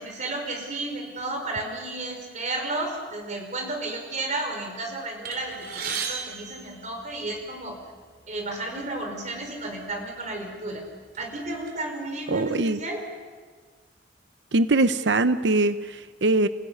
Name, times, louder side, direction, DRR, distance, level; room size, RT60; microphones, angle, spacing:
voice 1, 0.0-7.8 8.3-10.8 11.2-13.0, right 2 dB, 45° right, 3 dB, 5.4 m, -32 dB
sound 1, 5.2-7.6 8.4-8.5 8.9-9.0 9.9-10.1 10.5-11.7, right 6 dB, 60° right, 3.5 m, -35 dB
voice 2, 12.3-12.8 14.5-16.5, right 2 dB, 80° right, 12 dB, 0.8 m, -22 dB
27.5 x 16.5 x 9.6 m, 1.5 s
head